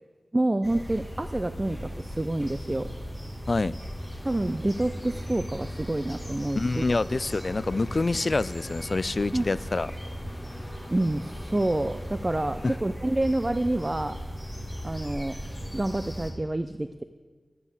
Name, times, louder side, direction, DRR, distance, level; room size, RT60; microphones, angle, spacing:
voice 1, 0.3-2.9 4.2-6.8 9.3-9.5 10.9-14.2 14.8-15.4 15.7-17.0, right 1 dB, 25° right, 10 dB, 0.5 m, -28 dB
sound 1, 0.6-16.3, equal, 10° right, 2.2 m, -37 dB
sound 2, 4.1-12.7, left 1 dB, 25° left, 2.7 m, -51 dB
voice 2, 6.6-9.9 12.6-12.7, left 3 dB, 50° left, 18 dB, 0.3 m, -26 dB
12.0 x 9.3 x 7.0 m, 1.4 s
wide cardioid pair, 65°, 0 cm